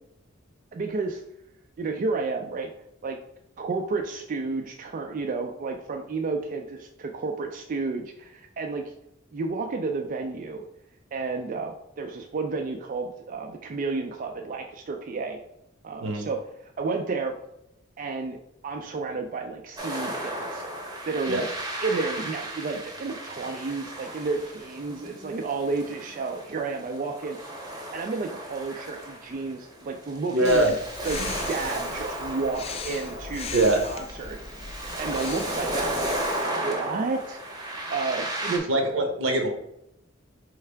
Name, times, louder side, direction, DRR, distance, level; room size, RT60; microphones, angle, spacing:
voice 1, 0.7-1.2 1.8-2.7 3.0-3.2 3.6-8.9 9.3-10.6 11.1-15.4 15.8-17.3 18.0-18.4 18.6-20.6 21.1-21.5 21.8-27.4 27.9-30.7 31.0-34.4 34.7-38.7, right 4 dB, 45° right, 3 dB, 0.3 m, -31 dB
sound 1, 19.8-38.6, right 1 dB, 20° right, 0.7 m, -35 dB
voice 2, 30.3-30.7 33.5-33.8 38.7-39.5, right 1 dB, 80° right, 4 dB, 0.9 m, -22 dB
Breathing, 30.4-36.4, left 4 dB, 30° left, 0.4 m, -38 dB
4.6 x 3.3 x 3.3 m, 0.80 s
head